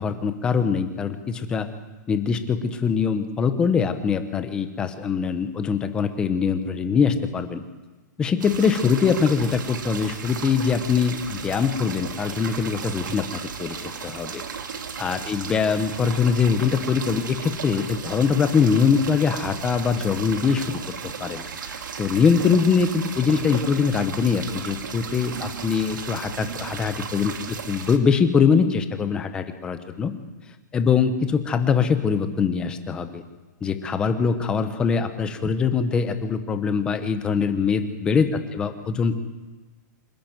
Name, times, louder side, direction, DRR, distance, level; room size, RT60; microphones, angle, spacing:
voice 1, 0.0-1.7 2.1-7.6 8.2-13.8 14.0-14.4 15.0-20.7 21.2-21.4 22.0-30.1 30.7-33.2 33.6-38.3 38.5-39.2, left 6 dB, 10° left, 9 dB, 1.0 m, -23 dB
sound 1, 8.4-28.0, right 6 dB, 80° right, 2.5 m, -35 dB
27.0 x 12.5 x 9.2 m, 1.2 s
hypercardioid pair, 180°, 10 cm